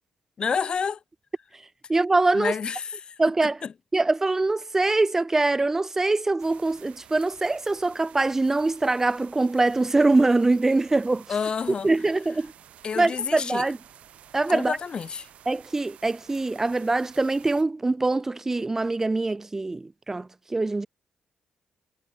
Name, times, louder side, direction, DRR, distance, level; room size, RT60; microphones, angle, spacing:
voice 1, 0.4-1.0 2.3-3.2 3.6-3.7 11.3-11.9 12.8-13.6 14.5-15.3, left 6 dB, 45° left, 0.4 m, -29 dB
voice 2, 1.9-2.6 3.2-3.6 3.9-11.2 11.8-12.5 13.0-13.8 14.3-14.8 15.5-20.9, right 2 dB, 20° right, 0.4 m, -23 dB
sound 1, 6.4-17.6, right 10 dB, 70° right, 2.7 m, -51 dB
cardioid pair, 85°, 2 cm